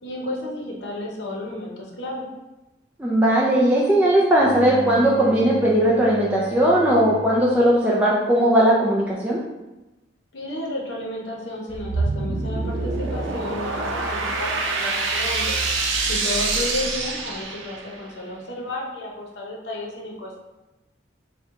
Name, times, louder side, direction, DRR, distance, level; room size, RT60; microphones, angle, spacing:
voice 1, 0.0-2.3 10.3-15.6 16.1-20.4, left 1 dB, 65° left, -2 dB, 0.8 m, -32 dB
voice 2, 3.0-9.4, right 1 dB, 10° right, -5 dB, 0.4 m, -18 dB
Bowed string instrument, 4.4-7.6, left 1 dB, 25° right, 0.9 m, -32 dB
sound 1, 11.7-18.0, right 3 dB, 90° right, 0.6 m, -25 dB
4.4 x 2.2 x 3.6 m, 1.0 s
head